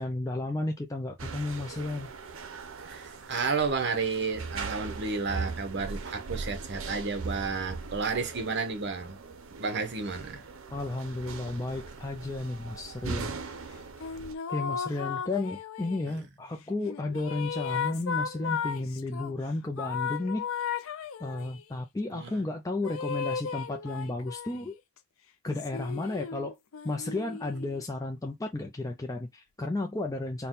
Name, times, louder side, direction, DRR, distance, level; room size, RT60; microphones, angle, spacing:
voice 1, 0.0-2.1 10.7-13.5 14.5-20.5 21.2-24.8 25.4-26.6 26.8-30.5, left 2 dB, 15° left, 0.5 m, -33 dB
sound 1, 1.2-14.3, right 4 dB, 80° right, 0.6 m, -40 dB
voice 2, 2.8-9.2 9.6-10.4 16.1-16.2 22.1-22.3, right 4 dB, 55° right, 0.9 m, -32 dB
sound 2, 14.0-16.2 16.8-19.3 19.8-21.6 22.8-24.7 25.5-27.8, left 7 dB, 85° left, 0.5 m, -35 dB
4.2 x 2.2 x 3.8 m
head